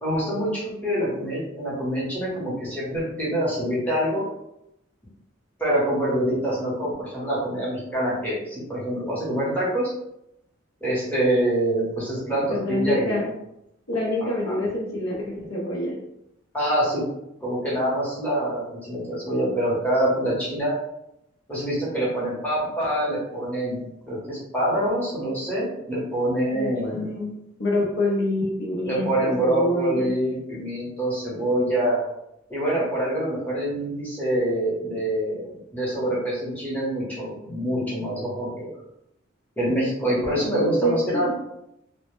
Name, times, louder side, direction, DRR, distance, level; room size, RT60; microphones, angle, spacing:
voice 1, 0.0-4.2 5.6-9.9 10.8-13.2 14.2-14.6 16.5-17.0 17.4-20.7 21.5-27.0 28.8-32.0 32.5-35.5 35.7-38.7 39.6-41.3, right 1 dB, 10° left, -7 dB, 0.8 m, -25 dB
voice 2, 12.5-13.3 13.9-15.9 26.5-27.3 27.6-30.1 40.6-41.3, left 1 dB, 70° left, -3 dB, 0.6 m, -26 dB
2.1 x 2.0 x 3.0 m, 0.82 s
head